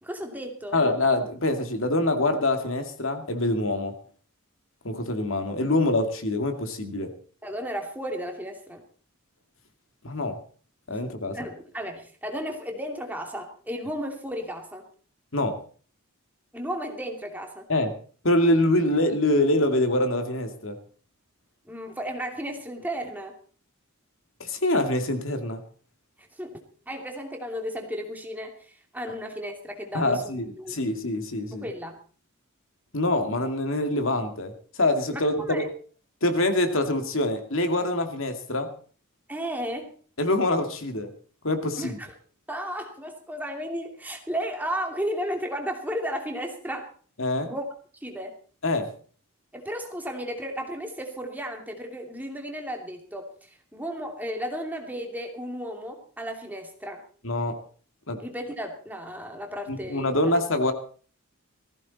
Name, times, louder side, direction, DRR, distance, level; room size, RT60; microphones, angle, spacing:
voice 1, 0.0-0.8 7.4-8.8 11.3-14.8 16.5-17.7 21.7-23.3 26.2-26.6 26.9-30.8 31.6-32.0 35.1-35.7 39.3-39.9 41.8-42.1 42.5-46.9 47.4-47.6 48.0-48.4 49.5-57.0 58.2-60.1, equal, 10° right, 3 dB, 2.7 m, -34 dB
voice 2, 0.7-3.9 4.8-7.1 10.0-10.4 10.9-11.4 15.3-15.6 17.7-17.9 18.2-20.8 24.4-25.6 29.9-31.6 32.9-34.5 34.8-35.6 36.2-38.7 40.2-41.1 41.4-42.0 47.2-47.5 48.6-48.9 57.2-57.6 58.1-58.2 59.7-60.7, left 1 dB, 65° left, 7 dB, 2.4 m, -25 dB
19.0 x 15.5 x 4.2 m, 0.42 s
head